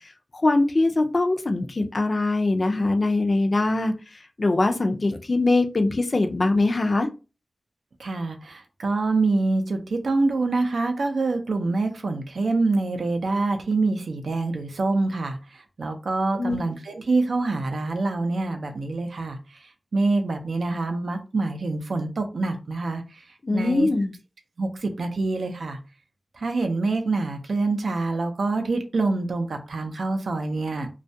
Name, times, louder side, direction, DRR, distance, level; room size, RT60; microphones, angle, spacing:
voice 1, 0.3-7.1 16.3-16.6 23.4-24.1, left 2 dB, 50° left, 0.3 m, -22 dB
voice 2, 8.0-19.6 19.9-23.2 23.5-23.9 24.6-25.8 26.3-30.9, right 3 dB, 85° right, 0.4 m, -26 dB
2.2 x 2.1 x 2.6 m
wide cardioid pair, 80°, 0 cm